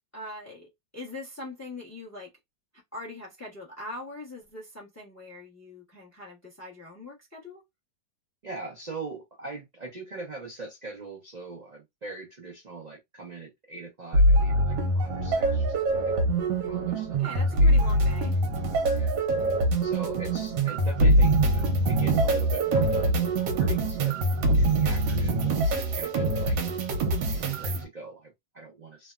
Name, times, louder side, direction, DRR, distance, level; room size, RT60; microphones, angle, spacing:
voice 1, 0.1-2.3 2.9-7.6 17.2-18.4, left 2 dB, 15° left, 0.7 m, -42 dB
voice 2, 8.4-16.3 16.6-18.0 18.9-19.2 19.8-24.3 24.6-26.6 27.3-29.1, right 4 dB, 55° right, 0.4 m, -42 dB
sound 1, 14.1-27.8, right 1 dB, 80° right, 1.4 m, -24 dB
3.2 x 2.2 x 2.3 m
omnidirectional pair, 2.0 m